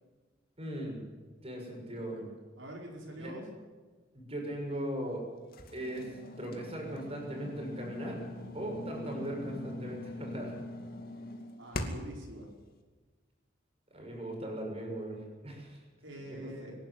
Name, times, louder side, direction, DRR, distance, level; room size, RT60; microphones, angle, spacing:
voice 1, 0.6-1.0 1.4-2.3 3.1-3.3 4.1-5.3 5.7-6.1 6.4-8.2 8.5-10.5 13.9-15.8 16.3-16.7, right 1 dB, 30° right, 1 dB, 6.7 m, -39 dB
voice 2, 2.6-3.5 11.6-12.5 16.0-16.7, right 1 dB, 70° right, -1 dB, 4.9 m, -44 dB
sound 1, 5.5-12.2, left 1 dB, 50° left, 2.4 m, -42 dB
24.5 x 12.0 x 9.7 m, 1.4 s
head